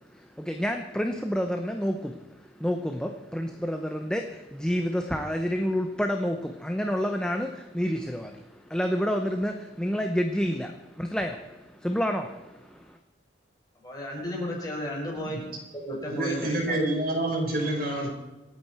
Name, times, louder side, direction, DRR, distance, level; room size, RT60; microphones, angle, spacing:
voice 1, 0.1-2.3 2.6-13.0, equal, 5° left, 0.9 m, -29 dB
voice 2, 13.8-15.4 15.7-16.8, left 1 dB, 20° left, 6.0 m, -33 dB
voice 3, 16.1-18.1, right 1 dB, 50° right, 5.0 m, -27 dB
27.0 x 9.1 x 4.5 m
head